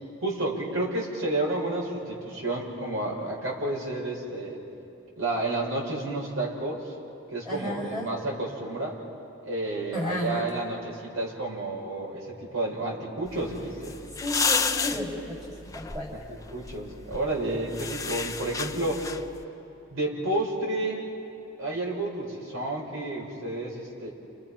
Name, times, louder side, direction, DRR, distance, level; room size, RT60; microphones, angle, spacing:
voice 1, 0.2-4.6 5.2-6.9 7.3-9.0 9.4-14.0 16.1-19.1 19.9-21.0 21.6-24.1, right 2 dB, 80° right, -2 dB, 6.1 m, -31 dB
voice 2, 7.4-8.1 9.9-10.5 14.2-16.1 21.7-21.8, equal, 20° right, -4 dB, 5.7 m, -33 dB
sound 1, 13.3-19.4, left 5 dB, 15° left, 0.7 m, -32 dB
30.0 x 29.5 x 5.9 m, 2.8 s
head